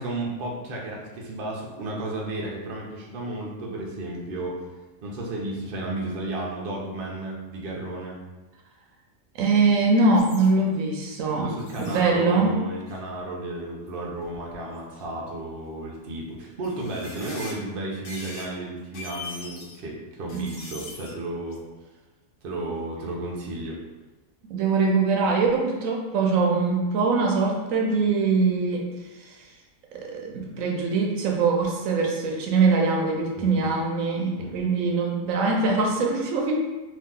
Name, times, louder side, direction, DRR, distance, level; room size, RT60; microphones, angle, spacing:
voice 1, 0.0-4.6 5.0-8.2 11.3-21.6 22.4-23.8 33.4-33.6 34.4-34.6, right 2 dB, 55° right, -2 dB, 0.7 m, -33 dB
voice 2, 9.4-11.5 11.8-12.6 20.3-20.7 24.5-28.8 29.3-29.4 29.9-36.5, right 4 dB, 75° right, 0 dB, 1.0 m, -23 dB
sound 1, 10.1-10.5 11.6-12.0 12.9-13.1 13.9-14.0 14.2-15.0 15.9-16.0 16.6-17.5 18.0-18.5 18.8-19.8 20.3-21.1 21.5-21.6, left 2 dB, 85° left, 1.1 m, -41 dB
2.8 x 2.6 x 3.6 m, 1.2 s
omnidirectional pair, 1.4 m